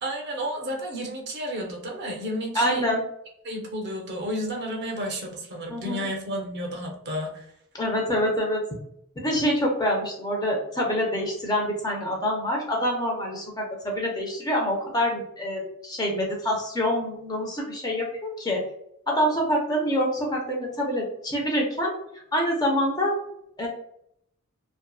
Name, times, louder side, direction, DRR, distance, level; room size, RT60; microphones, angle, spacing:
voice 1, 0.0-2.8 3.4-7.5, equal, 50° right, 1 dB, 0.6 m, -32 dB
voice 2, 2.5-3.0 5.7-6.0 7.8-8.6 9.2-18.6 19.1-21.9 22.3-23.1 23.6-23.7, equal, 20° left, -1 dB, 0.5 m, -26 dB
2.5 x 2.2 x 2.3 m, 0.72 s
head